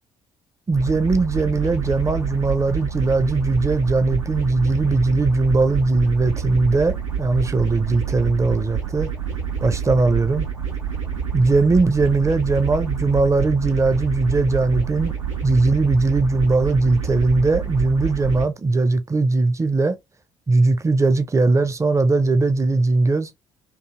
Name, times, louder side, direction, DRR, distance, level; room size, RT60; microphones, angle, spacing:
voice 1, 0.7-9.1 9.6-10.5 11.3-15.1 15.4-20.0 20.5-23.3, right 3 dB, 20° right, 0.5 m, -19 dB
sound 1, 0.7-18.4, right 7 dB, 90° right, 0.6 m, -27 dB
2.6 x 2.4 x 2.7 m
figure-of-eight pair, 45°, 16 cm